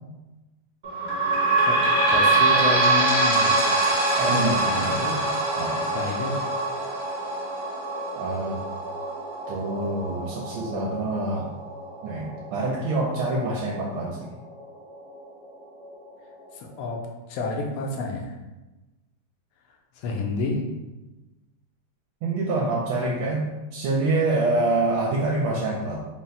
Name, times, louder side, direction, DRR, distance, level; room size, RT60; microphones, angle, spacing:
sound 1, 0.8-14.0 14.6-14.7 14.9-15.0 15.8-15.9, right 2 dB, 50° right, 1.4 m, -24 dB
voice 1, 2.1-3.6 4.7-5.2 5.9-6.5 16.5-17.0 17.3-18.3 20.0-20.6, left 3 dB, 80° left, 1 dB, 1.5 m, -29 dB
voice 2, 4.2-5.0 5.6-6.0 8.1-8.6 9.5-11.6 12.0-14.2 22.2-26.0, right 2 dB, 80° right, -3 dB, 1.4 m, -26 dB
4.2 x 2.1 x 3.9 m, 1.1 s
omnidirectional pair, 2.4 m